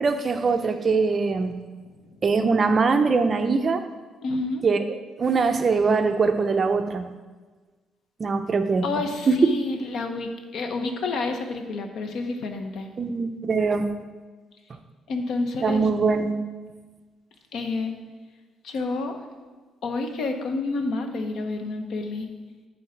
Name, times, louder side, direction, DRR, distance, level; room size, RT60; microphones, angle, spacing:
voice 1, 0.0-1.6 2.2-3.8 4.6-7.1 8.2-9.4 13.0-13.9 15.6-16.4, right 4 dB, 30° right, 7 dB, 0.5 m, -22 dB
voice 2, 4.2-4.6 8.8-12.9 15.1-15.8 17.5-18.0 18.6-19.1 19.8-22.3, left 3 dB, 60° left, 6 dB, 0.9 m, -29 dB
9.9 x 3.9 x 5.8 m, 1.3 s
cardioid pair, 170°, 0 cm